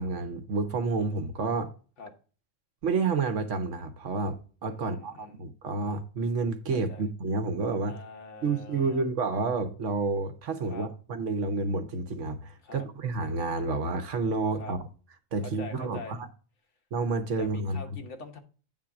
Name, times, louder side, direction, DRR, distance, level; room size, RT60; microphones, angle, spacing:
voice 1, 0.0-1.7 2.8-7.9 8.4-14.8 15.3-16.3 16.9-17.8, right 3 dB, 70° right, 1.2 m, -30 dB
voice 2, 4.8-5.4 6.9-7.0 7.8-9.1 10.7-10.9 12.6-12.9 14.6-14.8 15.4-16.2 17.3-18.4, left 4 dB, 65° left, 1.6 m, -44 dB
9.0 x 3.7 x 5.7 m
omnidirectional pair, 1.3 m